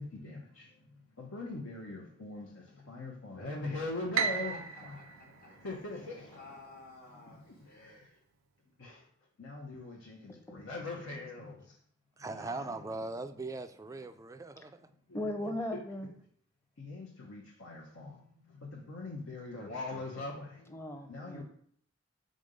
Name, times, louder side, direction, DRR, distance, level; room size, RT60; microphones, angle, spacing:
voice 1, 1.2-2.5 2.9-5.0 5.6-6.2 8.8-8.9 9.4-11.5 12.4-12.8 15.1-15.3 16.8-18.1 18.7-20.5 21.1-21.4, left 2 dB, 80° left, 1.0 m, -41 dB
voice 2, 4.1-5.7 6.3-8.0, left 3 dB, 45° left, 1.2 m, -54 dB
Piano, 4.2-6.4, right 6 dB, 90° right, 0.5 m, -35 dB
voice 3, 12.2-14.9, right 3 dB, 15° right, 0.3 m, -40 dB
voice 4, 15.1-16.1 20.7-21.4, left 1 dB, 10° left, 0.7 m, -37 dB
5.2 x 3.9 x 5.2 m
head